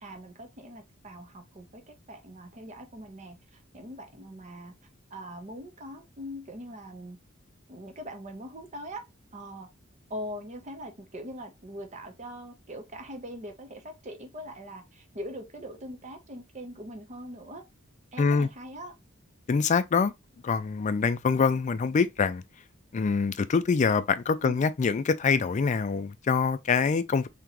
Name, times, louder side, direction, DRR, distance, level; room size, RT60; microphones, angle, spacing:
voice 1, 0.0-4.7 5.1-7.2 7.7-9.0 9.3-9.7 10.1-17.6 18.1-19.0 24.4-24.6, equal, 35° right, 0.8 m, -42 dB
voice 2, 18.2-18.5 19.5-20.1 20.4-22.4 22.9-27.3, left 5 dB, 35° left, 0.3 m, -25 dB
3.6 x 2.9 x 2.9 m
head